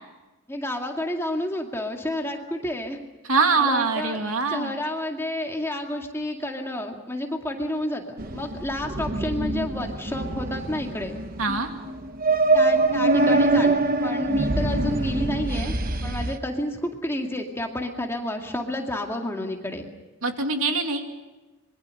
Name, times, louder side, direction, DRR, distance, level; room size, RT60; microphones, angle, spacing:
voice 1, 0.5-3.0 3.6-4.2 4.5-11.2 12.5-15.8 16.0-19.9, left 1 dB, 10° left, 2 dB, 2.1 m, -30 dB
voice 2, 3.2-4.7 11.4-11.7 20.2-21.0, right 4 dB, 70° right, 5 dB, 2.5 m, -23 dB
sound 1, 8.2-16.4, right 2 dB, 40° right, 1.0 m, -24 dB
26.0 x 22.5 x 6.5 m, 1.1 s
head